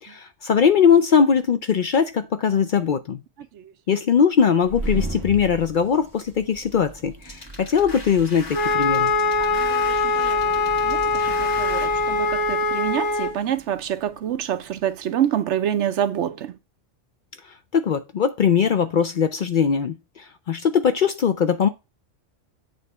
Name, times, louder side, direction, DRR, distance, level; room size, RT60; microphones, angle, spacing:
voice 1, 0.0-3.2 3.9-9.1 17.7-21.7, left 7 dB, 55° left, 0.6 m, -20 dB
sound 1, 4.5-15.0, right 2 dB, 15° right, 1.7 m, -37 dB
sound 2, 7.2-11.9, left 2 dB, 35° left, 1.8 m, -40 dB
Wind instrument woodwind instrument, 8.5-13.3, left 3 dB, 75° left, 1.7 m, -22 dB
voice 2, 9.4-16.6, right 10 dB, 75° right, 1.0 m, -27 dB
8.0 x 3.3 x 5.5 m
omnidirectional pair, 1.2 m